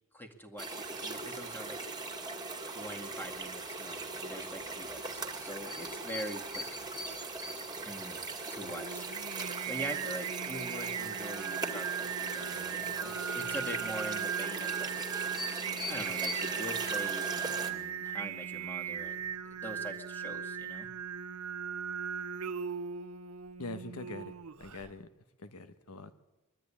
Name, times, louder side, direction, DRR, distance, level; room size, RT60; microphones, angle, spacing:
voice 1, 0.1-1.8 2.6-6.8 7.8-8.2 8.5-9.1 9.7-14.9 15.9-20.9, equal, 10° left, 3 dB, 2.1 m, -43 dB
sound 1, 0.6-17.7, right 2 dB, 20° right, 2.2 m, -39 dB
Singing, 8.6-24.9, right 8 dB, 70° right, 0.7 m, -38 dB
voice 2, 23.6-25.1 25.4-26.1, left 2 dB, 70° left, 12 dB, 1.3 m, -43 dB
22.0 x 13.0 x 10.0 m, 1.1 s
head